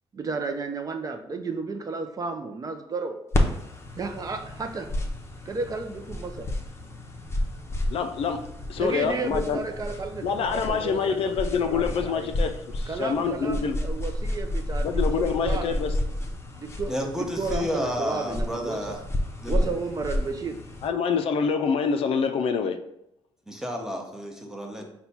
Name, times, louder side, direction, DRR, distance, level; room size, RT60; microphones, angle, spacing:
voice 1, 0.1-3.2 4.0-4.9 5.4-6.5 8.8-12.3 12.9-14.9 15.1-15.8 16.5-19.0 19.5-20.6, right 4 dB, 35° right, 0.4 m, -33 dB
sound 1, 3.3-20.9, left 1 dB, 25° left, 0.6 m, -31 dB
voice 2, 7.9-9.6 10.2-13.8 14.8-16.0 20.8-22.8 24.8-24.9, left 6 dB, 65° left, 0.4 m, -26 dB
voice 3, 16.9-19.0 19.4-19.6 23.5-24.9, equal, 5° right, 0.8 m, -31 dB
4.3 x 2.2 x 4.1 m
cardioid pair, 75°, 10 cm